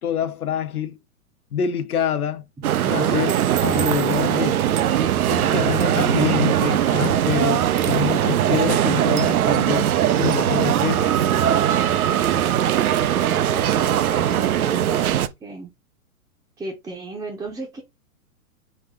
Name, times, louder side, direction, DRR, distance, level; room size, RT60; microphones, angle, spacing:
voice 1, 0.0-1.0 1.5-2.5 2.8-4.6 5.3-9.9 10.2-11.1, left 9 dB, 80° left, 0.9 m, -26 dB
sound 1, 2.6-15.3, right 10 dB, 75° right, 0.6 m, -20 dB
sound 2, 3.4-15.3, right 6 dB, 40° right, 0.9 m, -41 dB
voice 2, 13.1-15.7 16.6-17.8, right 2 dB, 10° right, 0.7 m, -35 dB
4.1 x 2.5 x 4.8 m
hypercardioid pair, 125°, 44 cm